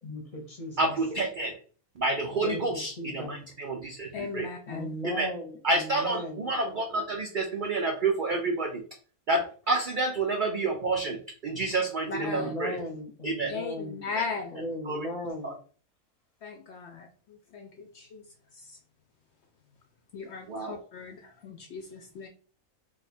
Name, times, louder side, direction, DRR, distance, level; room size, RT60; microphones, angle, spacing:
voice 1, 0.0-0.9 2.4-3.4 4.7-6.4 12.2-14.0 14.5-15.6, left 1 dB, 35° left, 0.7 m, -37 dB
voice 2, 0.8-1.6 2.0-4.5 5.0-5.3 5.6-8.8 9.3-12.8 13.2-13.5 14.1-14.2 14.9-15.1 15.4-15.5 20.5-20.8, right 2 dB, 70° right, 0.4 m, -29 dB
voice 3, 4.1-4.9 12.1-12.5 13.5-14.6 16.4-18.2 18.5-18.8 20.1-22.3, left 4 dB, 65° left, 0.7 m, -38 dB
2.7 x 2.4 x 4.1 m
omnidirectional pair, 1.5 m